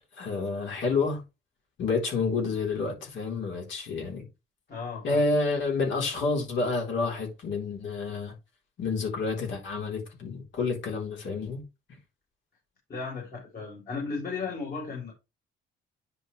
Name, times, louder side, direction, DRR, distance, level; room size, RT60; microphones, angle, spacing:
voice 1, 0.2-1.2 1.8-4.2 5.0-8.3 8.8-11.6, left 4 dB, 70° left, 3.8 m, -29 dB
voice 2, 4.7-5.2 12.9-15.1, left 4 dB, 50° left, 4.1 m, -35 dB
9.9 x 4.7 x 3.3 m
cardioid pair, 90°, 20 cm